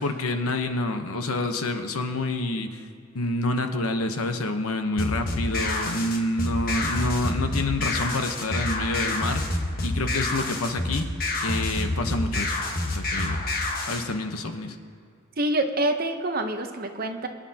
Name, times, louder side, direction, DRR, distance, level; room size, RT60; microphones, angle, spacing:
voice 1, 0.0-2.8 3.1-9.4 9.8-11.1 11.4-13.4 13.9-14.8, left 2 dB, 90° left, 6 dB, 1.0 m, -28 dB
sound 1, 5.0-14.0, left 2 dB, 40° left, 1.4 m, -28 dB
voice 2, 15.4-17.3, right 1 dB, 45° right, 5 dB, 0.9 m, -26 dB
24.0 x 9.9 x 2.9 m, 2.3 s
head